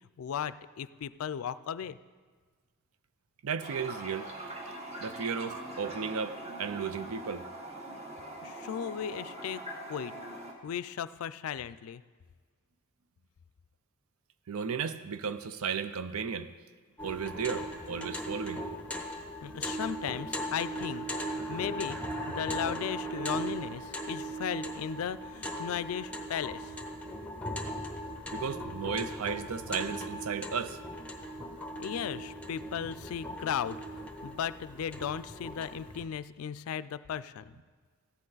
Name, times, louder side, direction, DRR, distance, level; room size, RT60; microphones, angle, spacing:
voice 1, 0.2-2.0 8.4-9.6 9.9-10.1 10.6-12.0 19.4-22.0 22.3-26.7 31.8-33.8 34.2-37.5, left 8 dB, 85° left, 16 dB, 0.3 m, -36 dB
voice 2, 3.4-4.3 5.0-7.4 14.5-16.5 17.0-18.6 28.3-30.8, right 6 dB, 90° right, 12 dB, 0.5 m, -34 dB
Toilet flush, 3.6-10.5, right 1 dB, 30° right, 1.3 m, -42 dB
sound 1, 17.0-36.1, equal, 5° left, 0.7 m, -38 dB
14.0 x 9.9 x 4.0 m, 1.5 s
head